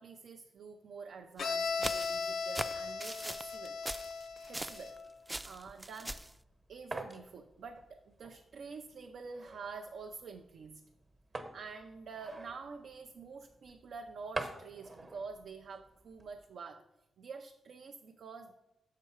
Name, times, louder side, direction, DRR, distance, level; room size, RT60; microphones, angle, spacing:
voice 1, 0.0-3.8 4.5-4.9 5.4-6.2 6.7-10.8 11.5-16.8 17.2-18.5, right 5 dB, 80° right, 5 dB, 0.4 m, -47 dB
Bowed string instrument, 1.4-5.1, left 5 dB, 70° left, 0.5 m, -37 dB
sound 1, 1.4-5.0 5.3-6.3, right 1 dB, 15° right, 0.3 m, -41 dB
sound 2, 6.0-16.5, right 2 dB, 40° right, 1.0 m, -48 dB
6.6 x 5.6 x 4.6 m, 0.93 s
cardioid pair, 90°, 0 cm